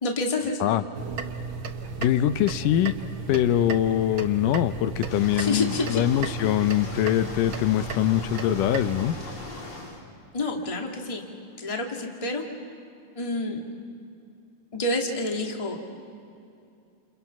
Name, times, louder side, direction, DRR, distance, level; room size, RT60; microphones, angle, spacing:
voice 1, 0.0-0.6 5.4-6.0 10.3-11.2 11.6-12.4 13.1-13.6 14.7-15.8, left 2 dB, 15° left, 1 dB, 1.5 m, -28 dB
sound 1, 0.9-9.1, right 5 dB, 60° right, 1.4 m, -35 dB
voice 2, 2.0-2.9 3.3-9.2, left 12 dB, 85° left, 12 dB, 2.3 m, -23 dB
sound 2, 5.1-10.0, left 2 dB, 40° left, 3.9 m, -39 dB
29.0 x 28.5 x 5.9 m, 2.5 s
omnidirectional pair, 3.7 m